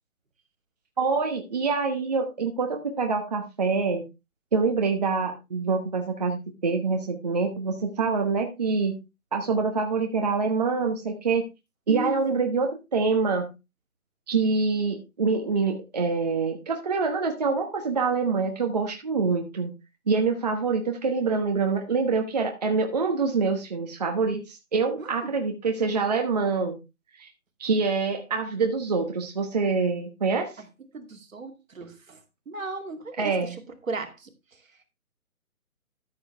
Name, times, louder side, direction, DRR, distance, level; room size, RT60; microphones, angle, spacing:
voice 1, 1.0-4.0 4.5-9.0 9.3-11.4 11.9-13.5 14.3-19.7 20.1-26.8 27.1-27.3 27.6-30.6 33.2-33.5, right 4 dB, 30° right, 1.1 m, -25 dB
voice 2, 11.9-12.2 25.0-25.3 30.9-32.2 32.5-33.5 33.9-34.3, right 3 dB, 60° right, 2.5 m, -35 dB
13.5 x 7.1 x 3.4 m
hypercardioid pair, 165°, 44 cm